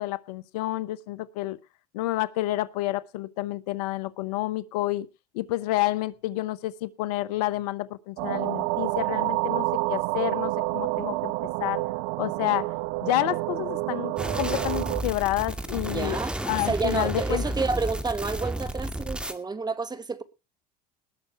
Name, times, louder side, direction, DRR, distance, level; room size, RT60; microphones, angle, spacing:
voice 1, 0.0-1.6 1.9-5.1 5.3-11.3 11.6-11.8 12.2-12.7 13.0-16.2 16.5-17.4, left 16 dB, 75° left, 1.0 m, -29 dB
sound 1, 8.2-15.0, right 22 dB, 70° right, 0.6 m, -28 dB
sound 2, 14.2-19.3, right 1 dB, 5° right, 2.2 m, -32 dB
voice 2, 15.9-16.4 16.7-20.2, right 4 dB, 20° right, 1.7 m, -29 dB
19.5 x 6.7 x 4.6 m
hypercardioid pair, 80°, 20 cm